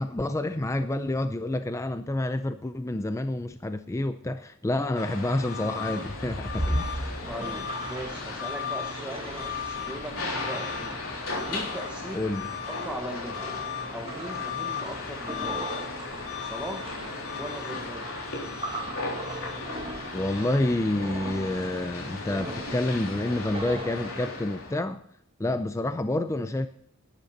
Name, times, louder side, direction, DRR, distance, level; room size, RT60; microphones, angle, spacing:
voice 1, 0.0-6.9 12.1-12.5 20.1-25.0 25.4-26.7, left 1 dB, 15° left, 9 dB, 0.4 m, -28 dB
sound 1, 4.9-24.8, left 4 dB, 85° left, 3.5 m, -35 dB
sound 2, 6.0-24.8, right 1 dB, 25° right, 1.2 m, -39 dB
voice 2, 7.2-11.0 11.4-12.3 12.7-13.5 13.9-15.7 16.4-17.0 17.4-18.0, right 1 dB, 5° right, 1 dB, 1.1 m, -39 dB
11.5 x 10.5 x 4.0 m, 0.69 s
head